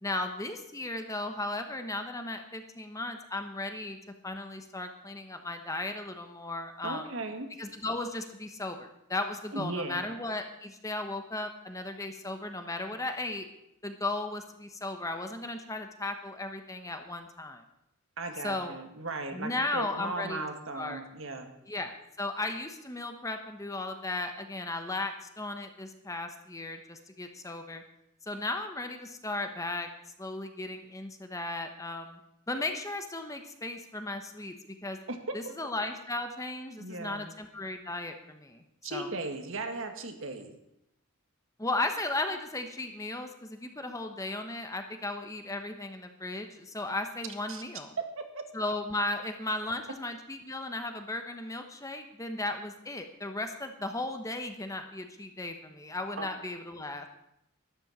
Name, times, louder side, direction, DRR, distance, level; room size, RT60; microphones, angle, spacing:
voice 1, 0.0-4.0 4.2-7.1 7.6-13.5 13.8-17.6 18.4-18.8 19.3-20.4 20.7-21.0 21.7-27.8 28.3-29.9 30.2-32.2 32.5-34.5 34.8-35.0 35.3-38.6 38.9-39.1 41.6-47.9 48.5-57.1, left 2 dB, 15° left, 6 dB, 1.1 m, -36 dB
voice 2, 6.8-7.5 9.5-10.0 18.2-21.5 35.1-35.2 36.8-37.3 38.8-40.6 47.5-47.6 48.2-48.4 56.2-56.3, right 2 dB, 60° right, 6 dB, 1.9 m, -37 dB
12.5 x 11.5 x 7.3 m, 0.82 s
head